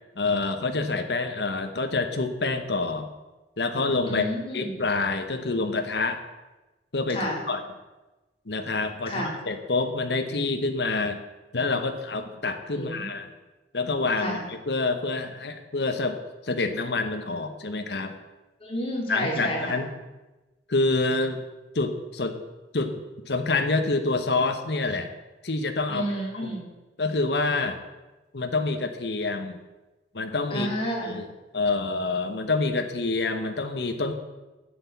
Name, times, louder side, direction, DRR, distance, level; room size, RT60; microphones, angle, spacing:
voice 1, 0.2-3.1 3.6-4.3 4.5-6.2 6.9-7.6 8.5-11.2 11.5-13.3 13.7-18.1 19.1-19.9 20.7-21.4 21.7-22.4 22.7-23.0 23.3-25.1 25.4-26.1 27.0-27.8 28.3-29.6 30.1-31.3 31.5-34.1, left 3 dB, 70° left, 6 dB, 1.1 m, -27 dB
voice 2, 4.1-4.7 7.1-7.4 9.1-9.3 12.7-13.1 14.2-14.4 18.6-19.8 25.9-26.6 30.5-31.1, equal, 30° left, -2 dB, 3.3 m, -30 dB
9.8 x 8.1 x 8.2 m, 1.1 s
head